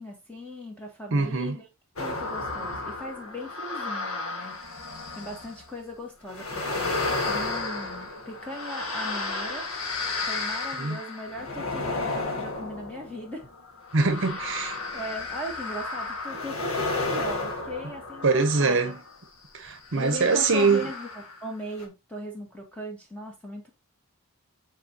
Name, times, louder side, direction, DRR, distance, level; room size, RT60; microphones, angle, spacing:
voice 1, 0.0-1.6 2.0-4.7 5.2-9.7 10.2-13.5 14.2-14.4 14.9-18.9 19.7-23.7, equal, 5° left, 2.0 m, -38 dB
voice 2, 1.1-1.6 10.8-11.0 13.9-14.8 18.2-19.0 19.5-20.9, right 4 dB, 60° right, 0.8 m, -23 dB
sound 1, 2.0-5.6 6.3-19.1 19.9-21.5 21.8-21.9, left 3 dB, 65° left, 1.5 m, -33 dB
7.8 x 4.4 x 2.8 m
head